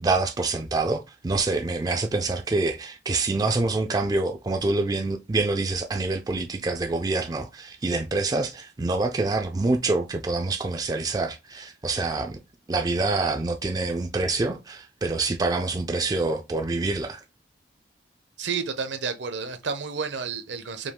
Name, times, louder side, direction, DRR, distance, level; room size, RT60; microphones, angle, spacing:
voice 1, 0.0-12.4 12.7-17.2, right 3 dB, 20° right, 0.3 m, -26 dB
voice 2, 18.4-20.9, right 5 dB, 70° right, 0.8 m, -31 dB
5.0 x 2.3 x 3.6 m
head